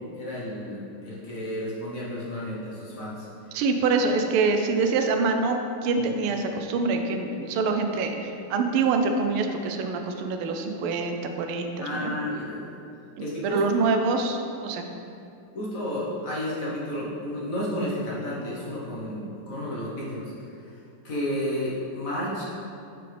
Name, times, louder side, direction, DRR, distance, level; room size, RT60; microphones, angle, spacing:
voice 1, 0.0-3.3 11.8-12.8 13.2-13.6 15.5-22.4, left 1 dB, 50° left, -6 dB, 1.2 m, -32 dB
voice 2, 3.5-12.1 13.4-14.8, right 4 dB, 85° right, 5 dB, 1.5 m, -25 dB
7.7 x 5.2 x 3.3 m, 2.6 s
omnidirectional pair, 2.4 m